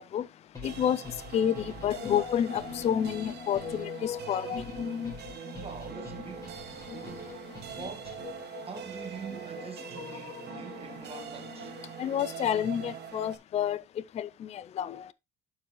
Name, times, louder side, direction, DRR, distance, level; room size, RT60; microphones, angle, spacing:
sound 1, 0.5-8.5, left 5 dB, 15° left, 4.0 m, -48 dB
voice 1, 0.6-1.0 1.3-5.1 6.9-7.0 7.3-7.4 10.0-10.2 11.1-11.2 12.0-13.8 14.1-15.1, left 9 dB, 35° left, 0.4 m, -30 dB
sound 2, 0.6-13.4, right 8 dB, 55° right, 1.5 m, -43 dB
voice 2, 5.4-7.3 7.7-11.8, right 5 dB, 30° right, 1.6 m, -45 dB
12.0 x 4.6 x 3.0 m
cardioid pair, 115°, 20 cm